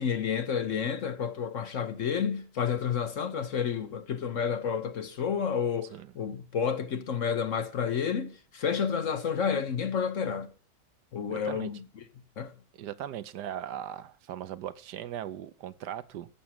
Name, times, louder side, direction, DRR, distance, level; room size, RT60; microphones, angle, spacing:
voice 1, 0.0-10.5 11.1-11.8 12.4-12.5, left 7 dB, 55° left, 1.1 m, -30 dB
voice 2, 11.3-11.7 12.7-16.3, right 11 dB, 75° right, 1.3 m, -39 dB
14.0 x 6.3 x 7.3 m
omnidirectional pair, 1.8 m